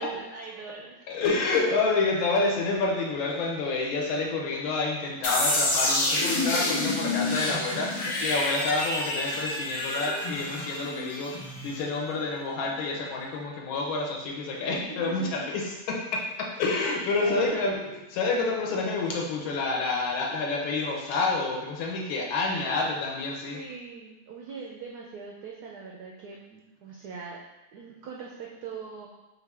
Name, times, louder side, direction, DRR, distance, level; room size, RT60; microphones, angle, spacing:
voice 1, 0.0-1.1 14.6-15.6 16.8-17.7 22.5-23.0 23.4-27.4 27.7-29.1, right 4 dB, 80° right, -2 dB, 0.8 m, -41 dB
voice 2, 1.1-23.6, left 3 dB, 75° left, -1 dB, 1.5 m, -28 dB
sound 1, 5.2-12.0, left 2 dB, 60° left, 1.5 m, -28 dB
4.8 x 2.5 x 3.3 m, 1.1 s
omnidirectional pair, 2.3 m